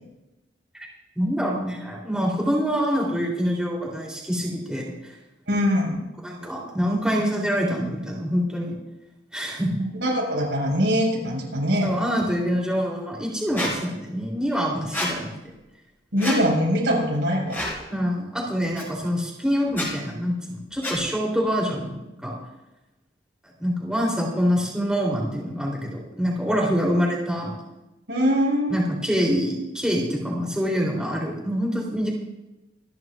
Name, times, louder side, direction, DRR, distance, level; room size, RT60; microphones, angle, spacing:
voice 1, 1.1-5.1 6.2-8.8 9.3-9.7 11.8-15.5 17.9-22.4 23.6-27.6 28.7-32.1, equal, 5° right, -3 dB, 3.3 m, -25 dB
voice 2, 5.5-6.1 6.4-6.5 10.0-11.9 16.1-17.6 28.1-28.8, equal, 85° right, -2 dB, 5.4 m, -22 dB
Squeak, 13.6-13.7 14.9-15.1 16.2-16.4 17.5-17.8 18.8-18.9 19.7-19.9 20.8-21.0, left 1 dB, 10° left, 4.4 m, -28 dB
26.0 x 11.0 x 2.5 m, 0.99 s
head